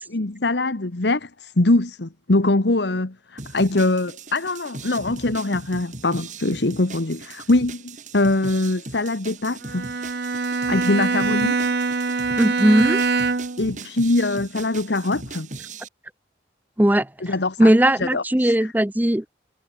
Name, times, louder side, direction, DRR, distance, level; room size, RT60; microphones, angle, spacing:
voice 1, 0.1-9.9 10.7-11.7 13.6-15.5 17.2-18.7, left 2 dB, 85° left, 1.4 m, -23 dB
sound 1, 3.4-15.9, right 3 dB, 45° right, 5.1 m, -39 dB
Bowed string instrument, 9.6-13.7, right 4 dB, 70° right, 0.8 m, -23 dB
voice 2, 12.4-13.0 16.8-17.1 17.6-19.2, right 1 dB, 10° right, 0.6 m, -18 dB
head